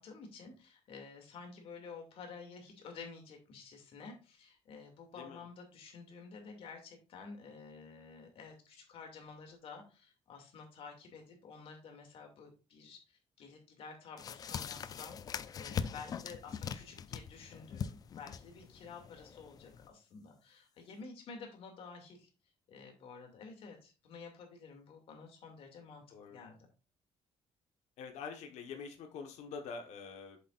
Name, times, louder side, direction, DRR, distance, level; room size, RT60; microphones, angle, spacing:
voice 1, 0.0-22.3 22.7-26.6, left 5 dB, 55° left, 3 dB, 2.5 m, -51 dB
sound 1, 14.2-19.9, left 7 dB, 35° left, 0.4 m, -42 dB
voice 2, 26.1-26.4 28.0-30.4, left 5 dB, 85° left, 4 dB, 1.3 m, -45 dB
8.0 x 7.4 x 2.5 m, 0.30 s
cardioid pair, 180°, 11 cm